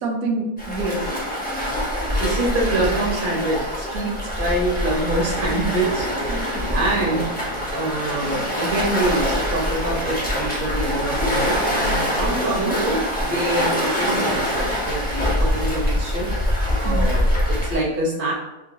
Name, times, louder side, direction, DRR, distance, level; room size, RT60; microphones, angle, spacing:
voice 1, 0.0-1.1 6.3-6.6 12.3-12.8 16.8-17.1, right 2 dB, 70° right, 2 dB, 1.0 m, -27 dB
Waves surf, 0.6-17.8, equal, 15° left, 0.4 m, -24 dB
voice 2, 2.2-18.3, right 2 dB, 45° right, -3 dB, 0.7 m, -26 dB
3.6 x 2.2 x 2.6 m, 1.0 s
omnidirectional pair, 1.6 m